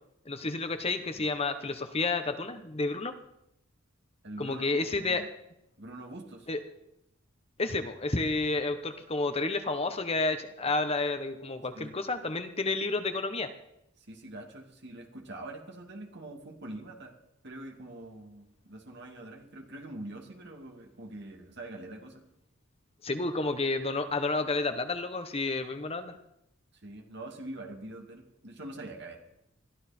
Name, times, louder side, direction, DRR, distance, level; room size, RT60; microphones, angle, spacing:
voice 1, 0.3-3.1 4.4-5.2 6.5-6.6 7.6-13.5 23.0-26.2, left 3 dB, 30° left, 8 dB, 1.0 m, -30 dB
voice 2, 4.2-5.3 5.8-6.5 11.7-11.9 14.0-17.1 17.4-22.2 26.7-29.2, right 1 dB, 55° right, 2 dB, 2.6 m, -44 dB
21.5 x 13.5 x 4.4 m, 0.81 s
head